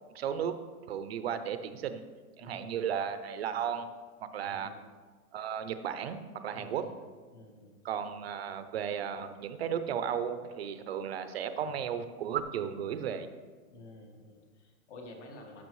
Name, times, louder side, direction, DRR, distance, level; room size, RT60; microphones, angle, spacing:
voice 1, 0.1-0.5 0.9-2.0 2.4-3.9 4.3-4.7 5.3-6.8 7.8-13.3, right 8 dB, 45° right, 10 dB, 0.5 m, -34 dB
voice 2, 2.4-2.8 4.4-4.8 6.5-7.0 7.3-7.7 13.7-15.6, left 2 dB, 50° left, 2 dB, 1.5 m, -50 dB
13.5 x 6.1 x 3.1 m, 1.4 s
supercardioid pair, 175°, 44 cm